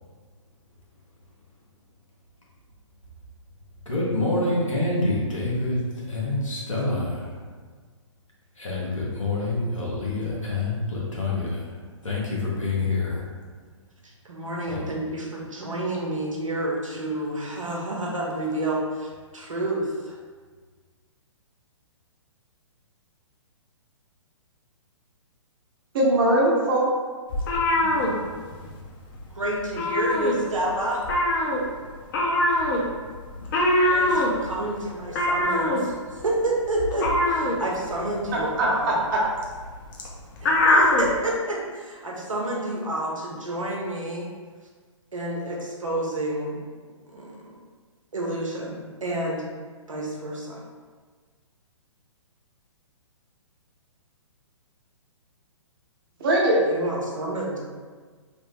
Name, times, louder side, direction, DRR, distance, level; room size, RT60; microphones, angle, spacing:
voice 1, 3.8-7.4 8.6-13.3 14.7-14.8, left 2 dB, 85° left, -5 dB, 1.1 m, -27 dB
voice 2, 14.0-19.8 29.3-31.0 33.9-39.0 40.4-44.3 45.1-46.6 47.1-47.4 48.1-49.5 49.9-50.6 56.6-57.6, right 1 dB, 85° right, -3 dB, 0.8 m, -29 dB
voice 3, 25.9-26.9 38.6-39.2 56.2-56.6, right 1 dB, 45° right, -3 dB, 0.8 m, -20 dB
sound 1, 27.3-28.8 29.1-29.3 29.6-30.7 31.0-41.1, left 1 dB, 40° left, 0.6 m, -23 dB
3.3 x 2.0 x 3.3 m, 1.5 s
figure-of-eight pair, 125°, 16 cm